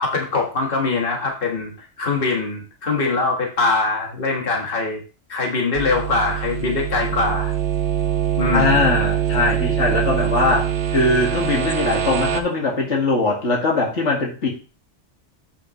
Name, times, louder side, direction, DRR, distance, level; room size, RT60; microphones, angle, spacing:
voice 1, 0.0-1.7 2.0-5.0 5.3-7.5 8.4-8.8, left 3 dB, 50° left, 0 dB, 1.7 m, -22 dB
sound 1, 5.7-12.4, right 9 dB, 75° right, 1.2 m, -23 dB
voice 2, 8.5-14.5, left 3 dB, 80° left, -1 dB, 2.2 m, -21 dB
8.6 x 5.8 x 3.0 m, 0.35 s
omnidirectional pair, 1.2 m